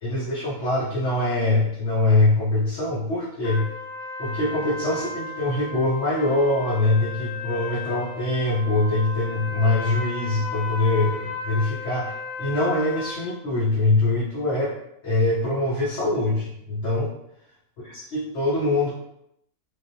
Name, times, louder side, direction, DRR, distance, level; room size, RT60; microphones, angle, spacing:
voice 1, 0.0-3.7 4.2-12.1 12.4-14.7 15.0-17.1 17.8-18.9, left 2 dB, 60° left, -7 dB, 1.0 m, -23 dB
sound 1, 3.4-13.3, left 3 dB, 80° left, 1.1 m, -35 dB
3.3 x 2.5 x 2.6 m, 0.77 s
omnidirectional pair, 1.5 m